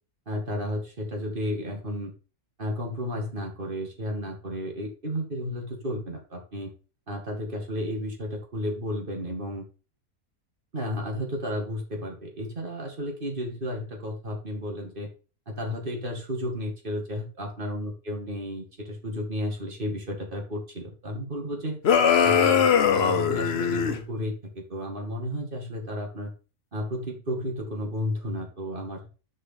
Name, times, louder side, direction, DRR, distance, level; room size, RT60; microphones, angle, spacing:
voice 1, 0.3-2.1 2.6-6.7 7.1-9.7 10.7-15.1 15.5-21.8 22.2-26.3 26.7-29.0, equal, 35° right, 2 dB, 2.4 m, -32 dB
sound 1, 21.8-24.0, left 7 dB, 50° left, 1.0 m, -21 dB
7.0 x 5.3 x 5.8 m, 0.34 s
omnidirectional pair, 1.5 m